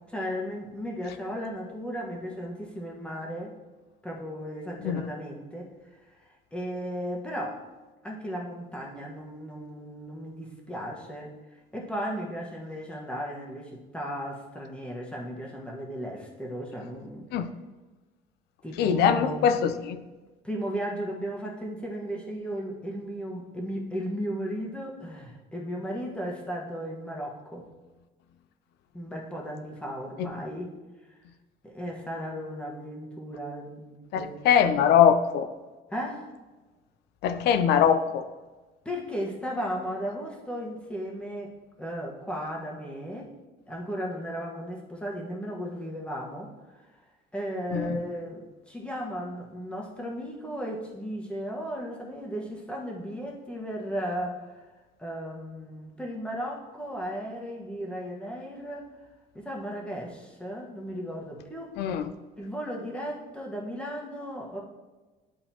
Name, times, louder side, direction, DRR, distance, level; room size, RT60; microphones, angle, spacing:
voice 1, 0.1-3.5 4.0-5.7 6.5-7.6 8.0-11.3 11.7-17.2 18.6-19.6 20.4-27.7 28.9-30.8 31.6-34.3 35.9-36.3 38.8-43.3 43.7-46.5 47.3-54.6 55.0-58.9 59.3-61.7 62.4-64.6, equal, 5° left, -2 dB, 1.4 m, -35 dB
voice 2, 18.8-20.0 30.2-30.3 34.4-35.5 37.2-38.2 47.7-48.0 61.8-62.0, left 8 dB, 80° left, 11 dB, 0.5 m, -22 dB
11.0 x 3.9 x 2.9 m, 1.2 s
cardioid pair, 110°, 17 cm